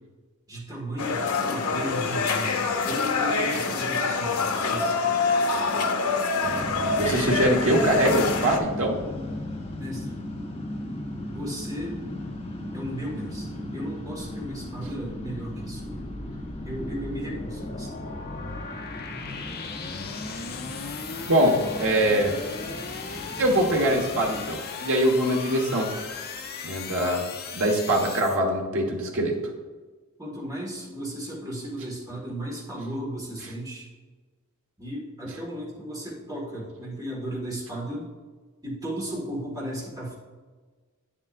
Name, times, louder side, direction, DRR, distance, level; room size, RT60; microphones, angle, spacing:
voice 1, 0.5-5.1 9.8-10.2 11.3-12.0 12.7-16.0 16.6-18.0 30.2-33.9 34.8-38.1 38.6-40.2, equal, 15° right, -4 dB, 1.7 m, -35 dB
sound 1, 1.0-8.6, left 4 dB, 80° left, 0.8 m, -25 dB
sound 2, 6.4-24.5, left 1 dB, 25° left, 1.3 m, -37 dB
voice 2, 7.0-8.9 21.3-22.3 23.4-25.9 26.6-27.3 27.5-29.4, right 1 dB, 65° right, 0 dB, 1.4 m, -23 dB
sound 3, 14.2-28.4, left 4 dB, 45° left, 0.7 m, -37 dB
9.0 x 7.3 x 2.5 m, 1.4 s
head